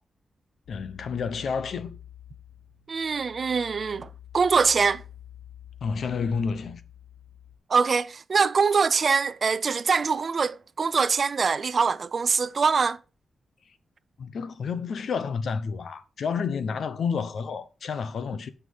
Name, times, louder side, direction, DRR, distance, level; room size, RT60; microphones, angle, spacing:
sound 1, 0.6-7.6, left 11 dB, 80° left, 2.6 m, -48 dB
voice 1, 0.7-2.0 5.8-6.8 14.2-18.5, left 5 dB, 65° left, 0.9 m, -30 dB
voice 2, 2.9-4.1 4.3-5.0 7.7-13.0, right 5 dB, 40° right, 0.4 m, -23 dB
9.5 x 6.0 x 5.4 m
wide cardioid pair, 145°, 0 cm